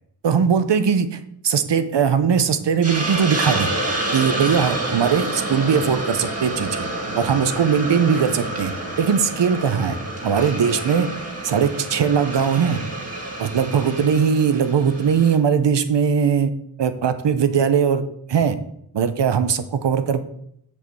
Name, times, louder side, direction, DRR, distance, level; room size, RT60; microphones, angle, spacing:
voice 1, 0.2-1.1 1.4-3.7 4.1-6.9 7.1-8.7 9.0-10.0 10.2-11.1 11.4-12.8 13.4-16.5 16.8-18.0 18.3-18.6 18.9-20.3, right 7 dB, 75° right, 11 dB, 0.9 m, -20 dB
Hiss, 2.8-15.4, right 1 dB, 35° right, 2.0 m, -28 dB
7.1 x 5.2 x 7.1 m, 0.71 s
wide cardioid pair, 110°, 42 cm